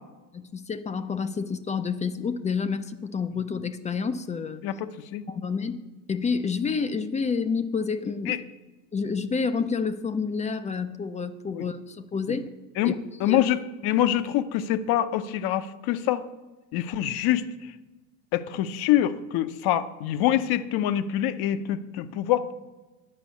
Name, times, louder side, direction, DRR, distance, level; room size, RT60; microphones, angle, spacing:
voice 1, 0.3-4.6 5.3-5.8 6.1-8.4 8.9-12.4 12.9-13.0 13.3-13.4, left 5 dB, 15° left, 12 dB, 0.4 m, -29 dB
voice 2, 4.6-5.2 8.3-8.4 11.5-11.6 12.8-12.9 13.2-16.2 16.7-17.5 18.3-22.5, left 12 dB, 60° left, 14 dB, 0.8 m, -25 dB
9.8 x 5.2 x 8.1 m, 1.2 s
supercardioid pair, 105°, 43 cm